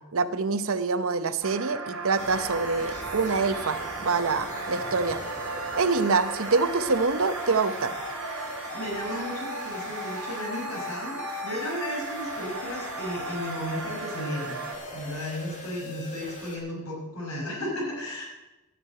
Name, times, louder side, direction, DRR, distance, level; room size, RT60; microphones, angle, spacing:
voice 1, 0.1-5.2 5.8-8.0, right 4 dB, 65° right, 12 dB, 0.8 m, -26 dB
sound 1, 1.4-14.7, right 4 dB, 85° right, 2.5 m, -36 dB
sound 2, 2.2-16.6, left 2 dB, 35° left, 2.5 m, -39 dB
sound 3, 3.7-13.6, equal, 15° right, 2.6 m, -51 dB
voice 2, 8.7-14.6 14.9-18.3, left 1 dB, 80° left, -2 dB, 5.6 m, -34 dB
13.0 x 6.7 x 8.8 m, 1.0 s
head